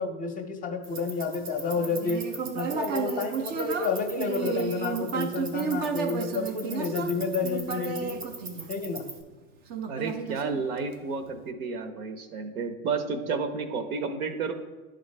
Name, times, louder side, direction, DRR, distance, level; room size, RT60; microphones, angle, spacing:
voice 1, 0.0-2.2 2.5-8.2 8.7-9.0, left 4 dB, 20° left, 4 dB, 0.7 m, -30 dB
sound 1, 0.8-9.2, right 4 dB, 90° right, 1.5 m, -42 dB
Human voice, 1.7-9.1 9.7-11.1, right 6 dB, 25° right, 0.3 m, -32 dB
voice 2, 9.9-14.5, right 4 dB, 75° right, 8 dB, 1.0 m, -31 dB
10.5 x 4.0 x 3.2 m, 1.3 s
hypercardioid pair, 110°, 44 cm